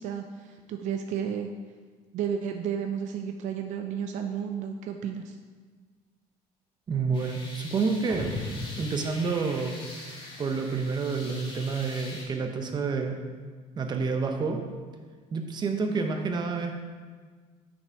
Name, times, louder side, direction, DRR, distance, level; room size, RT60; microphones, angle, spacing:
voice 1, 0.0-1.5 2.1-5.4, right 8 dB, 70° right, 5 dB, 0.5 m, -32 dB
voice 2, 6.9-8.3 8.8-9.8 10.4-13.2 13.8-14.6 15.3-16.7, right 4 dB, 35° right, 4 dB, 0.9 m, -29 dB
sound 1, 7.1-12.2, left 2 dB, 40° left, 2.0 m, -44 dB
sound 2, 8.1-10.6, left 2 dB, 10° right, 1.6 m, -37 dB
6.3 x 6.0 x 4.6 m, 1.5 s
cardioid pair, 125°, 13 cm